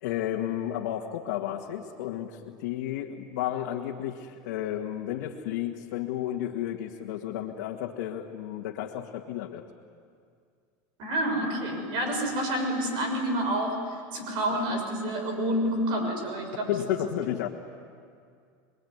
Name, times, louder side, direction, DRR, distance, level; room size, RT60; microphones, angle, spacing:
voice 1, 0.0-9.6 16.7-17.5, left 11 dB, 85° left, -1 dB, 1.8 m, -32 dB
voice 2, 11.0-16.7, right 1 dB, 60° right, 4 dB, 6.4 m, -28 dB
27.5 x 22.0 x 9.5 m, 2.2 s
supercardioid pair, 115°, 9 cm